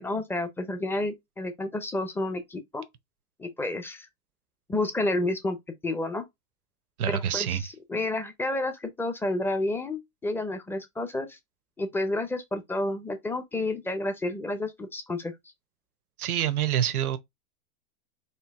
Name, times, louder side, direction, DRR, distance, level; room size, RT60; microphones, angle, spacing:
voice 1, 0.0-2.8 3.4-4.1 4.7-5.6 5.8-6.2 7.1-11.4 11.8-15.3, left 2 dB, 5° left, 0.6 m, -30 dB
voice 2, 7.0-7.6 16.2-17.2, right 10 dB, 90° right, 0.9 m, -26 dB
4.5 x 2.7 x 3.5 m
hypercardioid pair, 125°, 43 cm